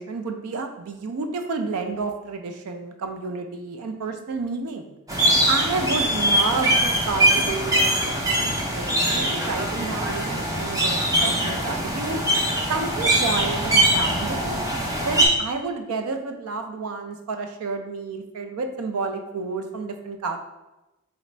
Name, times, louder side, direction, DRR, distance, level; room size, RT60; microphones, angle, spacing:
voice 1, 0.0-4.9 5.5-12.2 12.7-14.6 15.0-20.4, right 4 dB, 75° right, 5 dB, 0.4 m, -30 dB
sound 1, 5.1-15.3, right 1 dB, 15° right, 0.5 m, -22 dB
4.1 x 2.5 x 3.2 m, 1.0 s
head